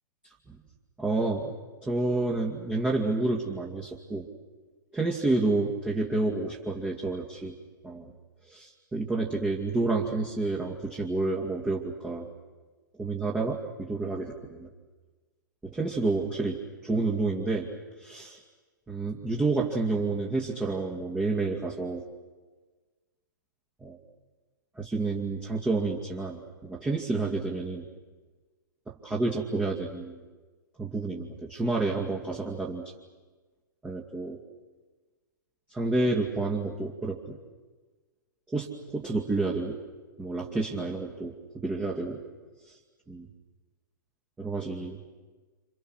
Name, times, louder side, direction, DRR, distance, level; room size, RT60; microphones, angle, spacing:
voice 1, 1.0-1.5 1.8-4.3 4.9-7.6 7.8-8.1 8.4-12.3 13.0-14.7 15.6-17.7 18.0-18.4 18.9-22.0 23.8-24.0 24.8-27.8 28.9-30.2 30.8-32.9 33.8-34.4 35.7-37.4 38.5-39.8 40.2-42.2 42.6-42.8 43.1-43.3 44.4-45.0, right 3 dB, 10° right, -1 dB, 2.5 m, -29 dB
28.0 x 28.0 x 6.5 m, 1.3 s
figure-of-eight pair, 110°, 11 cm